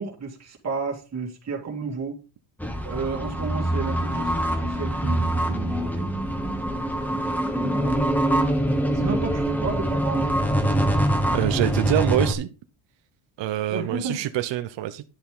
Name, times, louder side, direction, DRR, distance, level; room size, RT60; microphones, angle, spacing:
voice 1, 0.0-2.2 2.8-5.9 7.5-8.0 8.9-10.4 13.7-14.2, right 4 dB, 35° right, 2.6 m, -32 dB
sound 1, 2.6-12.3, right 1 dB, 5° left, 1.2 m, -24 dB
voice 2, 11.3-12.5 13.4-15.0, right 13 dB, 65° right, 0.9 m, -25 dB
10.5 x 7.1 x 3.9 m
cardioid pair, 160°, 48 cm